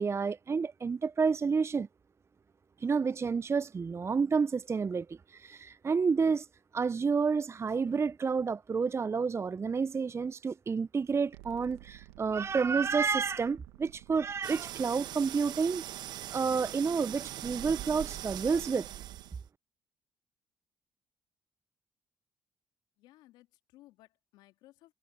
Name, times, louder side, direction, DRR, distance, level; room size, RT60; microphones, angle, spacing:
voice 1, 0.0-1.9 2.8-6.5 6.7-15.8 16.3-18.9, right 5 dB, 35° right, 0.5 m, -30 dB
sound 1, 11.3-19.3, right 20 dB, 90° right, 1.5 m, -54 dB
sound 2, 14.4-19.5, right 12 dB, 75° right, 1.1 m, -41 dB
voice 2, 23.0-24.9, left 16 dB, 80° left, 2.5 m, -59 dB
hypercardioid pair, 45°, 7 cm